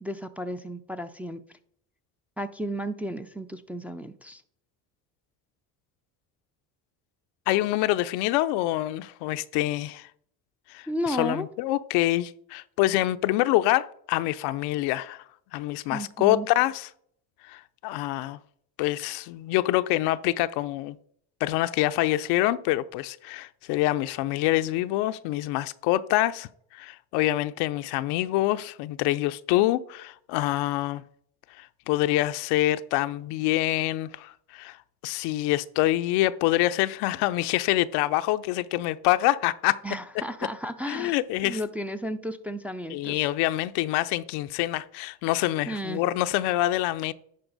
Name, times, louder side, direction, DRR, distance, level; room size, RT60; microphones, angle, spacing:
voice 1, 0.0-1.4 2.4-4.4 10.9-11.5 15.9-16.5 39.8-41.2 41.4-43.3 45.7-46.0, equal, 5° right, 0.4 m, -33 dB
voice 2, 7.5-10.1 10.7-15.2 15.5-16.9 17.5-18.4 18.8-21.0 21.4-31.0 31.6-34.8 35.0-39.8 40.9-41.6 42.9-47.1, left 16 dB, 80° left, 0.5 m, -26 dB
10.5 x 4.3 x 3.9 m
cardioid pair, 105°, 39 cm